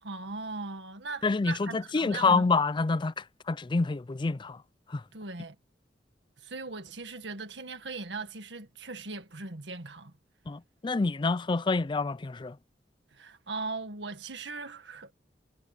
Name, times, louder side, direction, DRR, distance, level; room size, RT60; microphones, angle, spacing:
voice 1, 0.0-2.5 5.1-5.6 6.4-10.1 13.1-15.1, right 3 dB, 80° right, 1.8 m, -39 dB
voice 2, 1.2-4.6 4.9-5.0 10.5-12.6, left 4 dB, 25° left, 0.4 m, -27 dB
head